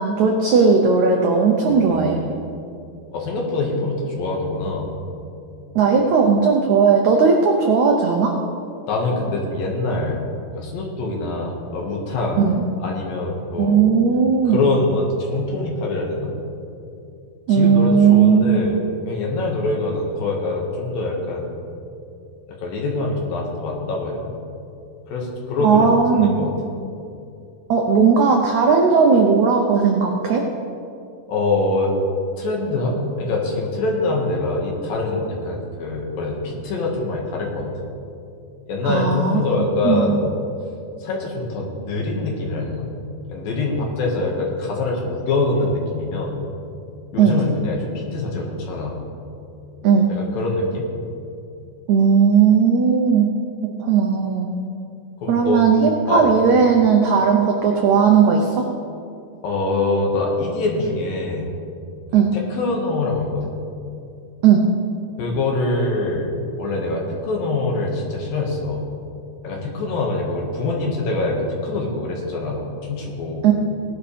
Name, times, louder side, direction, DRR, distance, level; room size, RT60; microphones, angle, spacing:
voice 1, 0.0-2.2 5.7-8.4 12.4-12.6 13.6-14.6 17.5-18.6 25.6-26.4 27.7-30.4 38.8-39.4 39.8-40.2 47.2-47.4 49.8-50.1 51.9-53.3 53.6-54.5 55.3-58.7 62.1-62.3 64.4-64.7 73.4-73.5, right 6 dB, 85° right, 2 dB, 1.6 m, -16 dB
voice 2, 1.7-2.4 3.1-4.9 8.9-10.2 10.5-12.4 12.8-13.9 14.4-16.3 17.5-18.8 19.1-21.4 22.5-24.4 25.1-26.5 31.3-31.9 32.4-37.7 38.7-40.3 41.0-42.9 43.3-46.4 47.1-49.0 50.1-50.9 55.2-55.7 56.1-56.2 59.4-61.5 62.3-63.5 65.2-68.9 69.4-73.4, left 2 dB, 70° left, -1 dB, 3.4 m, -24 dB
17.5 x 11.5 x 3.4 m, 2.6 s
omnidirectional pair, 4.5 m